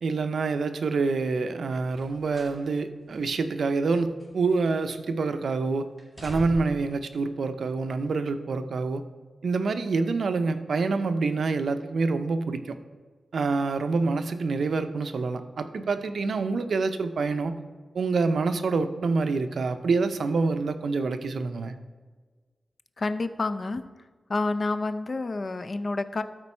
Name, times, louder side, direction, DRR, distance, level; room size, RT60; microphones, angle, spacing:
voice 1, 0.0-5.9 6.2-9.0 9.4-12.8 13.3-17.6 17.9-21.7, right 4 dB, 75° right, 9 dB, 0.5 m, -26 dB
sound 1, 1.9-2.6 3.0-3.1 3.9-4.9 5.2-5.6 6.0-6.9 7.8-7.9, equal, ahead, 1.9 m, -42 dB
voice 2, 23.0-24.0 24.3-26.2, left 3 dB, 40° left, 10 dB, 0.4 m, -29 dB
12.5 x 4.5 x 4.3 m, 1.4 s
wide cardioid pair, 135°, 0 cm